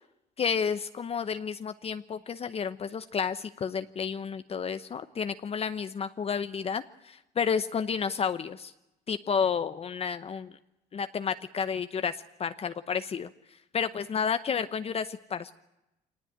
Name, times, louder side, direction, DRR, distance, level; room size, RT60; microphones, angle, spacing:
voice 1, 0.4-8.7 9.1-10.5 10.9-13.3 13.7-15.5, left 6 dB, 35° left, 11 dB, 0.8 m, -31 dB
25.0 x 19.5 x 9.1 m, 0.93 s
cardioid pair, 110°, 17 cm